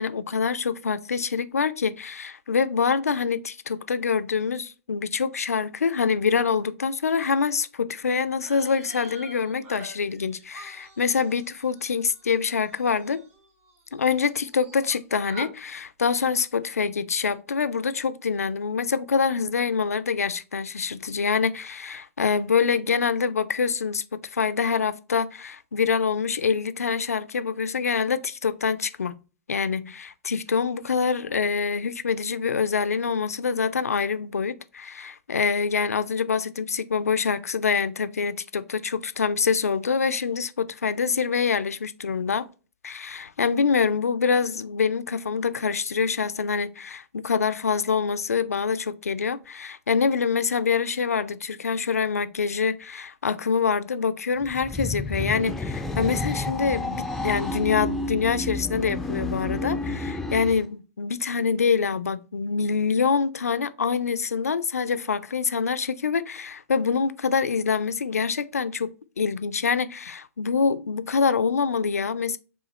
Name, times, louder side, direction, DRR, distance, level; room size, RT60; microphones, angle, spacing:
voice 1, 0.0-13.2 13.9-29.1 29.5-42.5 42.8-68.9 69.2-72.4, left 5 dB, 75° left, 0.3 m, -25 dB
sound 1, 8.4-14.0 14.2-15.0 15.2-15.5, right 1 dB, 35° right, 1.8 m, -46 dB
sound 2, 54.4-60.7, left 2 dB, 5° left, 0.4 m, -30 dB
5.5 x 2.4 x 2.9 m
figure-of-eight pair, 105°, 8 cm